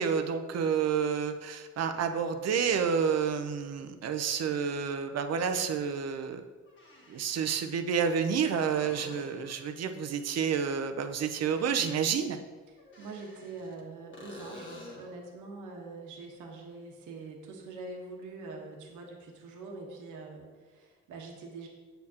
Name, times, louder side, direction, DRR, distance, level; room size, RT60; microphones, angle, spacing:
voice 1, 0.0-6.4 7.1-12.4, right 6 dB, 55° right, 8 dB, 0.7 m, -29 dB
sound 1, 6.7-7.4 8.5-9.6 12.8-13.8 14.1-15.2 18.8-18.9, left 1 dB, 40° left, 1.4 m, -48 dB
voice 2, 12.7-21.7, right 3 dB, 85° right, 0 dB, 1.3 m, -44 dB
7.9 x 6.5 x 2.9 m, 1.4 s
cardioid pair, 90°, 30 cm